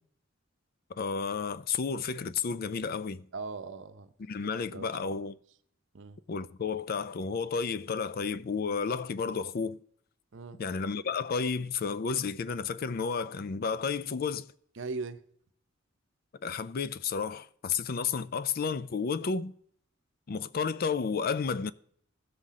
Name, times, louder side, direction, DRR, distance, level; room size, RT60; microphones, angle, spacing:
voice 1, 0.9-3.3 4.2-5.4 6.3-9.8 10.6-14.5 16.4-19.5 20.3-21.7, left 5 dB, 50° left, 0.4 m, -32 dB
voice 2, 3.3-4.1 4.5-5.1 5.9-6.2 10.3-10.6 14.8-15.2, right 4 dB, 65° right, 0.7 m, -39 dB
16.0 x 5.8 x 3.7 m
head